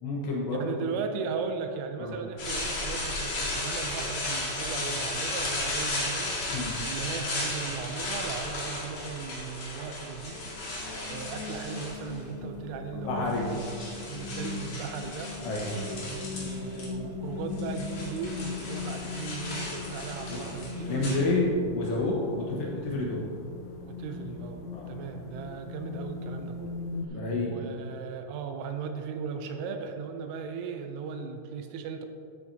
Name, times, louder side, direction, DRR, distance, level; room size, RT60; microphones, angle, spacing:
voice 1, 0.0-0.9 2.0-2.2 6.5-6.7 12.9-13.4 15.4-15.7 20.3-20.4 20.8-23.3 24.7-24.9 27.1-27.6, left 2 dB, 70° left, -3 dB, 3.1 m, -29 dB
voice 2, 0.5-13.6 14.1-15.3 15.9-21.5 22.4-22.5 23.8-26.8 27.1-32.1, right 6 dB, 80° right, 6 dB, 3.1 m, -37 dB
sound 1, 2.4-12.3 13.1-16.9 17.1-21.7, left 2 dB, 50° left, 2.2 m, -35 dB
sound 2, 10.3-27.1, left 4 dB, 85° left, 2.3 m, -39 dB
13.5 x 8.5 x 2.8 m, 2.5 s
omnidirectional pair, 5.8 m